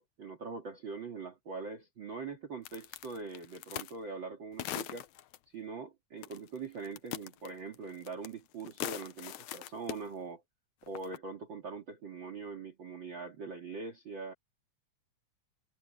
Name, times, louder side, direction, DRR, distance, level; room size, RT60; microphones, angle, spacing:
voice 1, 0.0-5.1 5.5-10.4 10.8-14.3, right 4 dB, 40° right, 2.5 m, -42 dB
sound 1, 2.6-4.0 4.6-5.4 6.2-6.6 6.8-8.3 8.6-10.0 10.9-11.2, left 13 dB, 70° left, 1.9 m, -40 dB
omnidirectional pair, 3.9 m